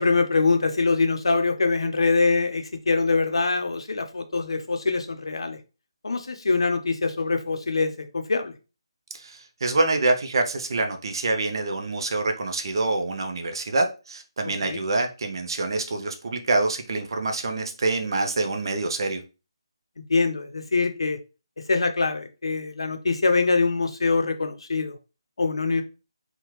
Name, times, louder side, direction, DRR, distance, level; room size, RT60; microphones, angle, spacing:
voice 1, 0.0-5.6 6.0-8.5 14.6-14.8 20.1-21.2 21.7-25.0 25.4-25.8, left 4 dB, 70° left, 7 dB, 0.6 m, -24 dB
voice 2, 9.1-19.2, right 2 dB, 50° right, 5 dB, 0.7 m, -26 dB
3.5 x 2.2 x 3.1 m, 0.31 s
figure-of-eight pair, 150°, 3 cm